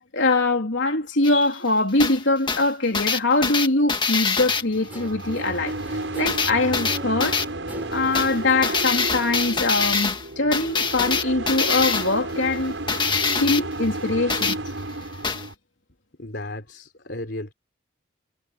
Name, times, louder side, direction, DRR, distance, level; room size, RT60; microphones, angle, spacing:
voice 1, 0.1-7.4 7.9-12.7 13.4-14.6, left 2 dB, 80° left, 3.4 m, -23 dB
sound 1, 1.2-1.3 2.0-2.2 2.5-4.6 6.3-7.4 8.1-8.4 8.6-10.3 10.5-12.1 12.9-13.6 14.3-14.6 15.2-15.5, left 5 dB, 25° left, 1.9 m, -24 dB
sound 2, 4.5-15.5, right 2 dB, 80° right, 6.0 m, -32 dB
Guitar, 4.9-10.7, equal, 10° right, 5.7 m, -44 dB
voice 2, 16.2-17.5, left 1 dB, 60° left, 3.6 m, -34 dB
head